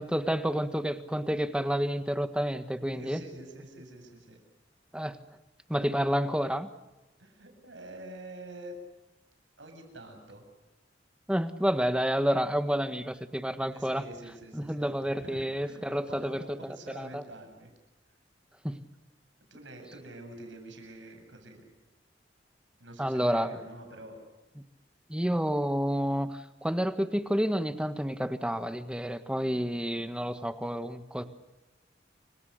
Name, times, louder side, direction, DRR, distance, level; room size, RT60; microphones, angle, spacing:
voice 1, 0.0-3.2 4.9-5.2 5.7-6.7 11.3-14.0 14.5-17.2 18.6-18.8 23.0-23.6 25.1-31.3, equal, 5° right, 10 dB, 1.5 m, -29 dB
voice 2, 2.9-4.4 7.2-8.8 9.6-10.5 13.7-14.9 15.1-17.7 19.5-21.6 22.8-24.2, right 1 dB, 90° right, 5 dB, 7.7 m, -47 dB
30.0 x 25.0 x 6.7 m, 1.0 s
head